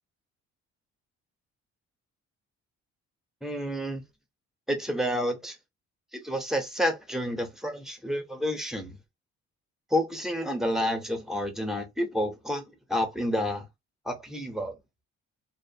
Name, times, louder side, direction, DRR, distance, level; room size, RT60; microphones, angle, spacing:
voice 1, 3.4-4.0 4.7-5.6 6.1-9.0 9.9-12.6 12.9-13.6 14.1-14.7, equal, ahead, 0.8 m, -29 dB
2.5 x 2.1 x 2.6 m
cardioid pair, 90°, 30 cm